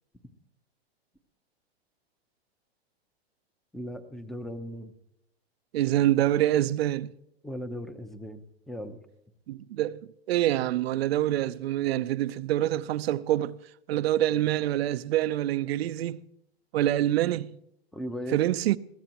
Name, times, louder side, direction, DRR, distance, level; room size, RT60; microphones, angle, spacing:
voice 1, 3.7-4.9 7.4-9.0 17.9-18.4, equal, ahead, 0.8 m, -37 dB
voice 2, 5.7-7.1 9.5-13.6 13.9-16.2 16.7-17.6 18.3-18.8, right 13 dB, 70° right, 0.6 m, -26 dB
21.5 x 15.5 x 3.0 m
hypercardioid pair, 135°, 31 cm